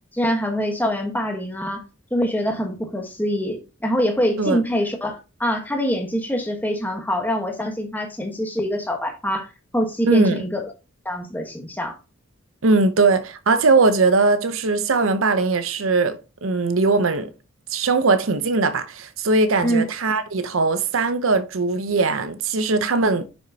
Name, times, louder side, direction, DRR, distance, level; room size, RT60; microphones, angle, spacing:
voice 1, 0.1-1.8 2.1-9.5 9.7-10.6 11.0-12.0 19.6-19.8, equal, 10° left, 1.2 m, -24 dB
voice 2, 10.1-10.4 12.6-17.3 17.7-23.2, right 3 dB, 70° right, 0.7 m, -20 dB
6.4 x 6.3 x 2.8 m
head